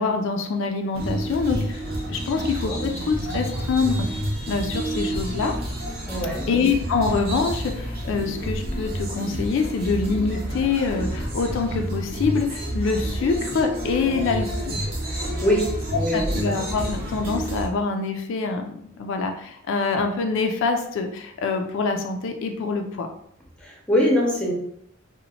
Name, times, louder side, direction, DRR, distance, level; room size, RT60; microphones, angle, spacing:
voice 1, 0.0-4.0 4.5-5.6 6.5-14.8 16.1-23.1, left 4 dB, 65° left, 4 dB, 0.3 m, -25 dB
sound 1, 0.9-17.7, right 1 dB, 50° right, 0.7 m, -29 dB
voice 2, 2.3-2.8 6.1-6.4 14.0-14.2 15.4-15.6 15.9-16.4 23.6-24.5, equal, 5° left, -2 dB, 0.6 m, -24 dB
2.8 x 2.0 x 2.7 m, 0.70 s
head